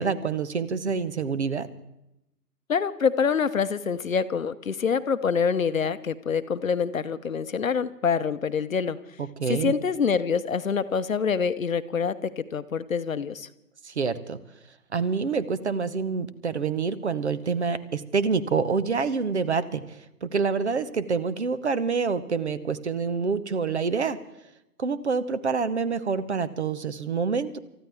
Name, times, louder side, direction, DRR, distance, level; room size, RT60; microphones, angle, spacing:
voice 1, 0.0-1.7 9.2-9.7 13.8-14.4 14.9-24.2 24.8-27.6, right 5 dB, 45° right, 15 dB, 1.1 m, -27 dB
voice 2, 2.7-9.0 9.5-13.5, left 6 dB, 55° left, 13 dB, 0.9 m, -26 dB
28.5 x 14.0 x 3.5 m, 0.87 s
figure-of-eight pair, 155°, 48 cm